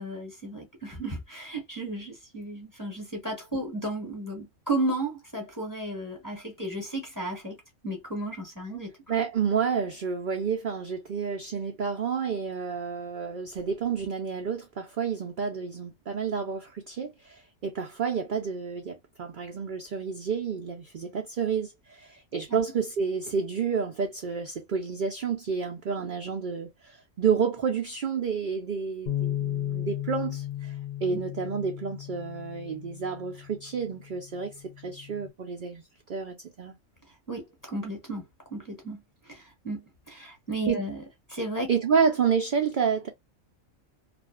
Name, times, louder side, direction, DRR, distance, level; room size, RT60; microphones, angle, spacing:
voice 1, 0.0-7.6 7.8-9.0 22.5-22.6 31.1-31.2 37.3-38.2 38.5-41.0 41.3-41.7, right 1 dB, 15° left, 0.9 m, -34 dB
voice 2, 9.1-30.8 31.0-35.8 36.1-36.8 40.7-40.8 41.7-43.1, right 6 dB, 65° right, 0.5 m, -30 dB
Bass guitar, 29.1-35.3, left 12 dB, 55° left, 0.5 m, -35 dB
2.5 x 2.4 x 2.3 m
omnidirectional pair, 1.4 m